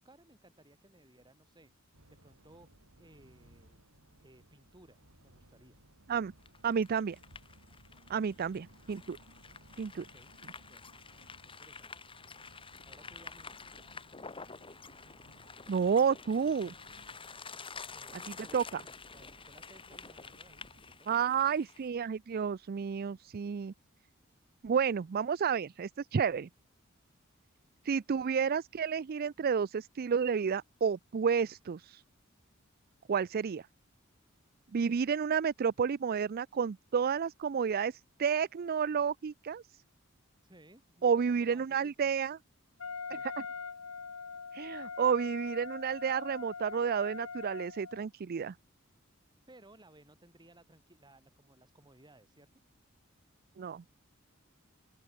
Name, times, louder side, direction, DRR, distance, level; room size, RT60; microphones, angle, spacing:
voice 1, 0.0-2.7 3.0-3.8 4.2-5.8 9.9-10.3 10.7-10.9 11.2-11.9 12.8-13.7 17.9-21.4 40.4-42.2 43.1-43.3 49.5-52.5, right 1 dB, 20° right, 5.3 m, -60 dB
sound 1, 1.9-21.0, right 1 dB, 80° right, 6.8 m, -61 dB
sound 2, 6.4-21.9, left 5 dB, 25° left, 2.3 m, -49 dB
voice 2, 6.6-7.2 8.1-9.2 9.8-10.0 15.7-16.7 18.5-18.8 21.1-23.7 24.6-26.5 27.8-32.0 33.1-33.7 34.7-39.8 41.0-42.4 43.1-43.3 44.5-48.5 53.6-53.8, right 6 dB, 45° right, 0.4 m, -31 dB
Wind instrument woodwind instrument, 42.8-48.1, left 5 dB, 85° left, 1.4 m, -42 dB
open air
head